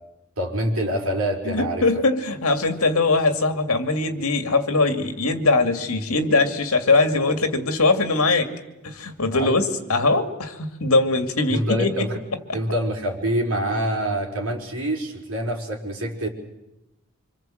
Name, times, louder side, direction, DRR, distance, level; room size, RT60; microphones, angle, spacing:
voice 1, 0.4-1.8 9.3-9.6 11.5-12.1 12.5-16.3, right 1 dB, 75° right, 0 dB, 4.8 m, -25 dB
voice 2, 1.4-8.5 8.8-12.1 12.5-12.6, left 3 dB, 80° left, 6 dB, 2.4 m, -21 dB
27.0 x 26.0 x 8.0 m, 0.96 s
head